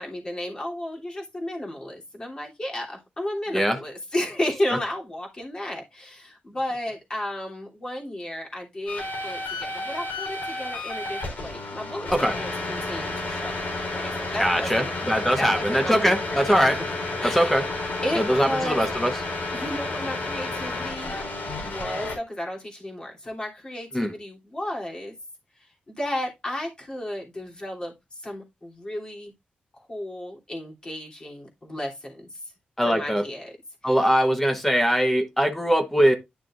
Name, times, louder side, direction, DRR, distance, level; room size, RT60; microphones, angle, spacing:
voice 1, 0.0-17.6 18.0-18.8 19.5-21.3 21.6-25.1 25.5-29.3 29.9-32.5 32.8-33.6 33.8-34.1, left 1 dB, 25° left, 3.1 m, -33 dB
sound 1, 8.9-22.2, left 2 dB, 70° left, 3.9 m, -31 dB
voice 2, 14.4-16.8 17.2-17.6 18.3-19.1 23.9-24.1 32.8-33.2 33.8-36.2, equal, 5° left, 0.9 m, -21 dB
10.5 x 6.4 x 2.5 m
wide cardioid pair, 140°, 3 cm